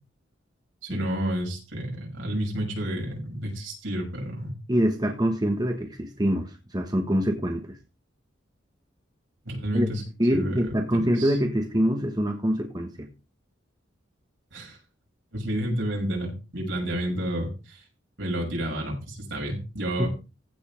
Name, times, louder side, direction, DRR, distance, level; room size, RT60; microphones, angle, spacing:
voice 1, 0.8-4.5 9.4-10.0 10.3-11.3 14.5-14.8 15.3-17.8 18.2-20.1, right 1 dB, 80° right, 6.5 m, -30 dB
voice 2, 4.7-7.8 9.7-9.9 10.2-13.1 20.0-20.1, equal, 20° right, 1.3 m, -25 dB
15.5 x 5.5 x 5.3 m
head